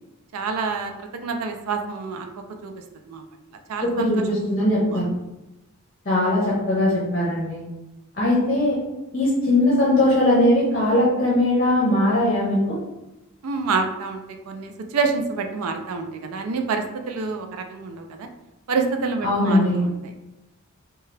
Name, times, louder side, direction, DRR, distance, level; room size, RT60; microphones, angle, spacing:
voice 1, 0.3-2.3 2.6-2.7 3.1-3.2 3.7-4.3 4.9-5.0 13.4-18.3 18.7-20.0, right 4 dB, 90° right, 5 dB, 0.4 m, -27 dB
voice 2, 3.8-5.1 6.0-7.6 8.1-8.8 9.1-12.8 19.2-19.8, left 1 dB, 40° left, -6 dB, 0.7 m, -20 dB
2.8 x 2.3 x 3.2 m, 0.95 s
head